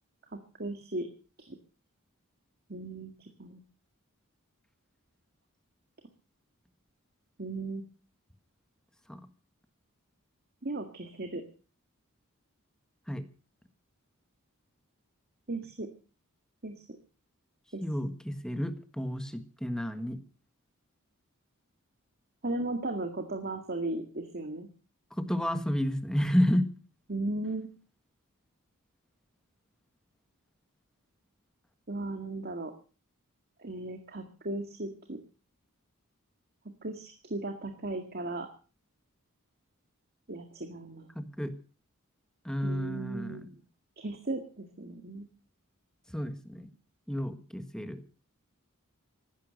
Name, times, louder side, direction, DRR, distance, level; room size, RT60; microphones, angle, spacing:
voice 1, 0.6-1.1 1.5-1.6 2.7-3.1 3.4-3.6 7.4-7.9 10.6-11.4 15.5-15.9 16.6-16.8 17.7-17.8 22.4-24.7 27.1-27.7 31.9-32.7 33.6-35.2 36.8-38.5 40.3-41.1 42.6-43.5 44.0-45.3, right 2 dB, 45° right, 6 dB, 2.0 m, -36 dB
voice 2, 17.8-20.2 25.2-26.7 41.1-41.5 42.4-43.4 46.1-46.7 47.1-48.0, equal, 5° left, 10 dB, 1.5 m, -31 dB
15.0 x 13.0 x 6.4 m, 0.38 s
head